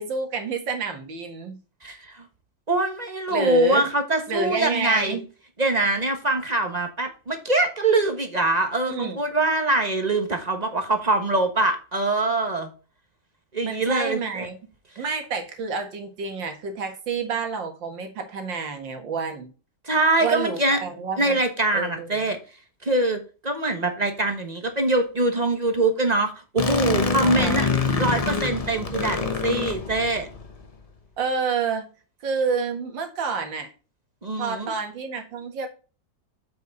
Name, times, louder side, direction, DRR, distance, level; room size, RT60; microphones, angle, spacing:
voice 1, 0.0-1.6 3.3-3.9 4.3-5.2 8.9-9.2 13.6-14.6 15.0-19.5 20.2-21.4 21.7-22.3 27.2-27.7 31.2-31.9 32.2-33.7 34.4-35.7, right 5 dB, 85° right, 5 dB, 2.4 m, -29 dB
voice 2, 1.8-2.3 2.7-5.2 5.6-12.7 13.5-14.5 14.9-15.0 19.8-20.8 21.2-22.4 22.8-27.7 28.0-30.3 34.2-34.7, right 2 dB, 25° right, 6 dB, 1.1 m, -23 dB
sound 1, 26.6-30.5, left 4 dB, 30° left, 0.7 m, -25 dB
7.8 x 5.6 x 4.0 m, 0.34 s
omnidirectional pair, 2.0 m